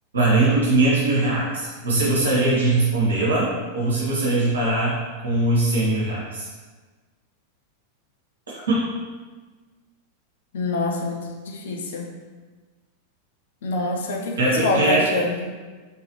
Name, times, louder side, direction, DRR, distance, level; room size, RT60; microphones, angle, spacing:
voice 1, 0.1-5.0 5.2-6.5 8.7-8.9 14.4-15.1, right 2 dB, 70° right, -6 dB, 1.4 m, -21 dB
voice 2, 10.5-12.1 13.6-15.5, left 2 dB, 60° left, 1 dB, 0.6 m, -25 dB
3.4 x 3.2 x 3.0 m, 1.3 s
figure-of-eight pair, 90°, 0 cm